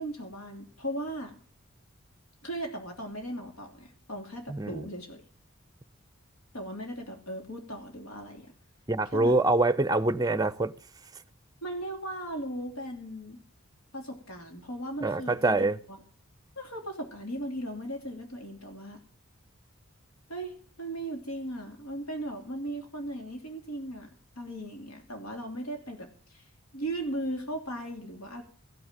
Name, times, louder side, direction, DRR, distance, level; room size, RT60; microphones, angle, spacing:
voice 1, 0.0-1.4 2.4-5.2 6.5-8.5 9.1-9.4 11.6-13.4 13.9-16.0 16.6-19.0 20.3-20.5 20.8-24.1 24.4-26.4 26.7-28.4, right 1 dB, 85° left, 2.9 m, -37 dB
voice 2, 4.5-4.9 8.9-10.7 15.0-15.8, right 2 dB, 15° right, 0.6 m, -25 dB
15.0 x 6.2 x 9.0 m
head